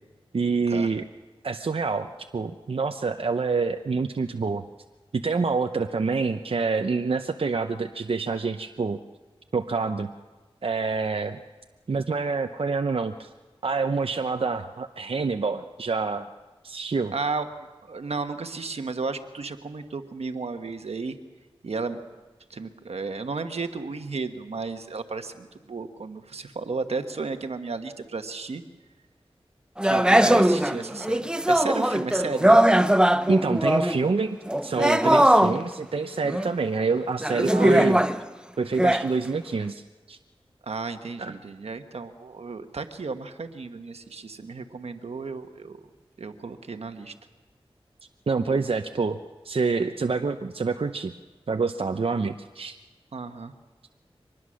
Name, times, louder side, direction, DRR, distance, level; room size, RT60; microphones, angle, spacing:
voice 1, 0.3-1.0 1.4-4.6 5.1-9.0 9.5-10.1 10.6-11.4 11.9-13.3 13.6-16.3 16.6-17.1 33.3-38.0 38.6-40.2 41.2-41.3 48.3-49.2 49.4-51.1 51.5-52.8, right 4 dB, 65° right, 7 dB, 0.7 m, -27 dB
voice 2, 17.1-17.5 17.9-21.2 21.6-22.0 22.5-28.6 29.8-32.6 37.4-38.0 40.6-45.8 46.2-47.1 53.1-53.5, right 4 dB, 85° right, 7 dB, 1.3 m, -33 dB
sound 1, 29.8-34.0 34.5-35.6 36.2-36.5 37.2-38.2 38.8-39.1, right 1 dB, 10° right, 0.8 m, -20 dB
24.0 x 20.0 x 6.4 m, 1.2 s
wide cardioid pair, 50°, 10 cm